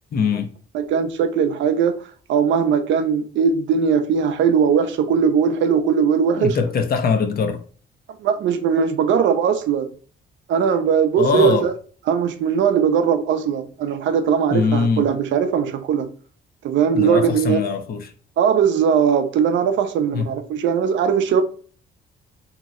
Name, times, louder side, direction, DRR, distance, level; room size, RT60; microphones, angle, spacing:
voice 1, 0.1-0.5 6.4-7.6 11.2-11.7 14.5-15.1 16.9-18.1 20.1-20.3, left 5 dB, 50° left, 0.5 m, -21 dB
voice 2, 0.7-2.0 2.3-6.6 8.2-9.9 10.5-11.7 12.1-16.1 16.6-17.6 18.4-21.4, right 7 dB, 70° right, 0.5 m, -19 dB
2.7 x 2.0 x 3.6 m
cardioid pair, 90°, 20 cm